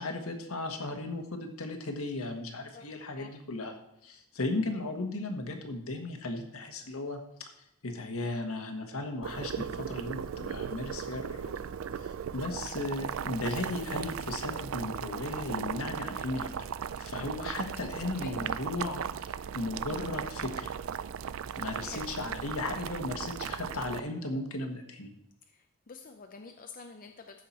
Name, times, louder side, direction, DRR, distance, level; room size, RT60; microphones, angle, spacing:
voice 1, 0.0-3.7 4.0-7.5 7.8-11.6 11.9-16.6 17.0-20.7 21.5-25.1, left 2 dB, 70° left, 4 dB, 1.5 m, -36 dB
voice 2, 2.7-3.3 18.1-18.3 21.8-22.1 25.5-27.4, left 4 dB, 40° left, 4 dB, 0.6 m, -49 dB
Boiling, 9.2-24.0, right 7 dB, 65° right, 0.3 m, -37 dB
14.0 x 5.8 x 4.4 m, 0.83 s
head